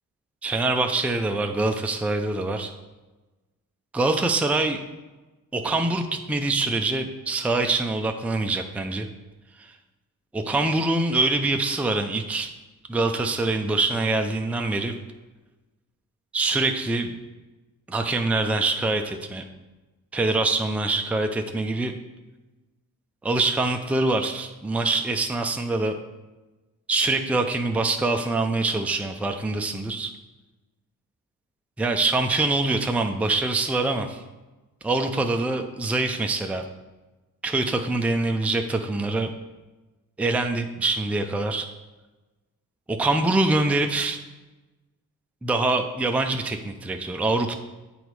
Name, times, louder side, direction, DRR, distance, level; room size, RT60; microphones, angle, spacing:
voice 1, 0.4-2.7 3.9-4.8 5.5-9.1 9.6-9.7 10.3-12.5 12.9-15.0 16.3-17.1 17.9-19.4 20.1-21.9 23.2-26.0 26.9-30.1 31.8-34.2 34.8-36.6 37.4-39.3 40.2-41.7 42.9-44.2 45.4-47.6, right 2 dB, 5° right, 4 dB, 0.5 m, -24 dB
7.9 x 4.0 x 4.7 m, 1.1 s
cardioid pair, 85°, 36 cm